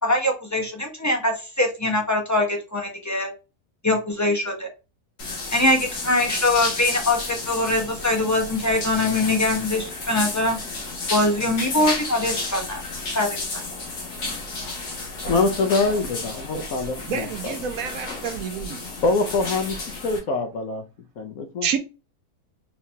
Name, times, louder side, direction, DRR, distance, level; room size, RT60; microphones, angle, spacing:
voice 1, 0.0-3.3 3.8-4.7 5.5-10.6 11.1-12.8 13.1-13.3, left 2 dB, 15° left, 0.7 m, -22 dB
sound 1, 5.2-20.2, left 3 dB, 90° left, 1.9 m, -32 dB
voice 2, 15.3-17.6 19.0-20.8 21.2-21.8, left 3 dB, 65° left, 1.1 m, -24 dB
voice 3, 17.1-18.8 21.6-21.8, right 7 dB, 70° right, 1.0 m, -28 dB
4.7 x 3.3 x 2.8 m
omnidirectional pair, 1.6 m